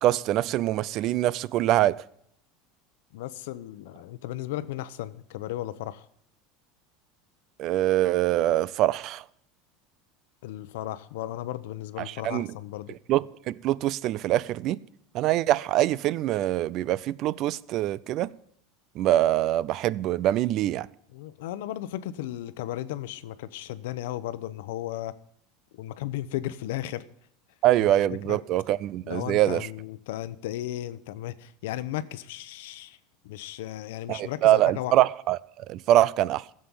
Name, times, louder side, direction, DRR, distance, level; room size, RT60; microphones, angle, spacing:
voice 1, 0.0-2.0 7.6-9.2 12.1-12.5 13.1-14.8 15.1-18.3 19.0-20.9 27.6-29.7 34.1-36.4, right 14 dB, 40° right, 0.4 m, -24 dB
voice 2, 3.1-6.0 10.4-12.9 21.1-25.1 25.7-27.0 27.8-27.9 28.3-28.4 29.0-33.0 33.2-34.9, left 14 dB, 80° left, 0.9 m, -35 dB
15.0 x 7.7 x 7.1 m
supercardioid pair, 170°, 0 cm